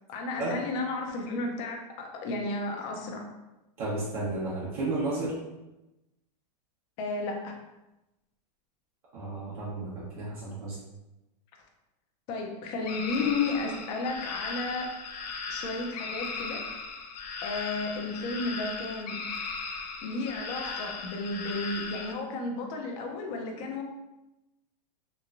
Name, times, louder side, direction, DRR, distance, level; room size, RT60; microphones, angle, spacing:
voice 1, 0.1-3.2 7.0-7.6 12.3-14.9 15.5-16.6 17.4-19.2 20.0-23.8, left 3 dB, 30° left, 2 dB, 0.4 m, -33 dB
voice 2, 3.8-5.4 9.1-10.8, right 2 dB, 60° right, -8 dB, 1.0 m, -32 dB
sound 1, 12.8-22.1, left 4 dB, 80° left, 0.5 m, -37 dB
2.9 x 2.2 x 2.4 m, 0.98 s
supercardioid pair, 150°, 21 cm